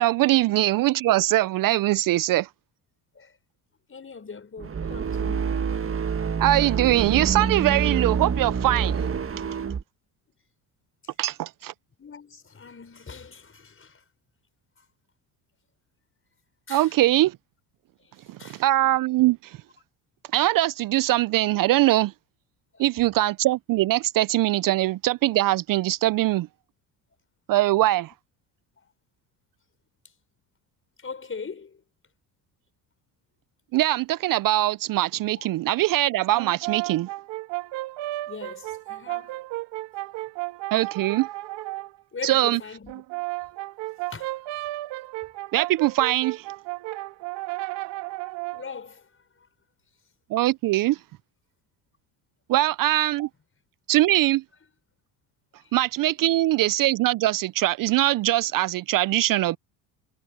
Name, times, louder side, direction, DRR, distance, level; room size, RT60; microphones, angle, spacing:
voice 1, 0.0-2.5 6.4-9.0 11.2-11.7 16.7-17.4 18.4-19.6 20.3-22.1 22.8-26.5 27.5-28.1 33.7-37.1 40.7-41.3 42.2-42.6 45.5-46.5 50.3-51.0 52.5-53.3 53.9-54.4 55.7-59.6, right 16 dB, 50° right, 0.5 m, -22 dB
voice 2, 3.9-5.7 12.0-14.0 16.7-16.9 18.4-18.6 22.7-22.9 28.8-28.9 31.0-31.8 38.3-39.4 42.1-43.4 44.1-44.4 48.5-49.1, left 5 dB, 30° left, 5.3 m, -40 dB
sound 1, 4.6-9.8, right 6 dB, 30° right, 1.7 m, -27 dB
Brass instrument, 36.3-41.9 42.9-48.7, right 19 dB, 75° right, 2.4 m, -34 dB
supercardioid pair, 75°, 44 cm